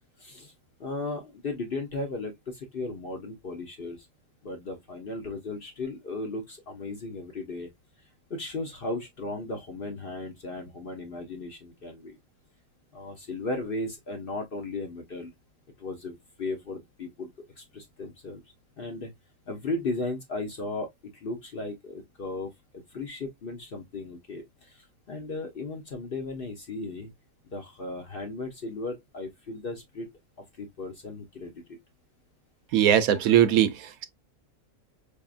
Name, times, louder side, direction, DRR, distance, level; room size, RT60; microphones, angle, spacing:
voice 1, 0.2-0.5 0.8-4.1 4.4-7.7 8.3-12.2 12.9-15.3 15.8-17.3 17.6-18.4 18.8-19.1 19.5-27.1 27.4-30.1 30.6-31.8, left 2 dB, 50° left, 0.7 m, -36 dB
voice 2, 32.7-34.0, right 10 dB, 75° right, 1.0 m, -21 dB
4.8 x 2.7 x 2.4 m
omnidirectional pair, 1.6 m